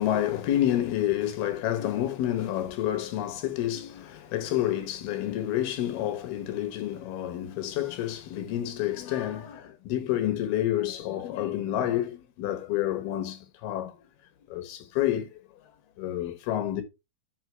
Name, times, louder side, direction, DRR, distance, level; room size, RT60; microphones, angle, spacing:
voice 1, 0.0-14.0 14.5-15.4 16.0-16.8, left 12 dB, 70° left, 3.1 m, -29 dB
6.5 x 6.2 x 4.6 m
omnidirectional pair, 4.9 m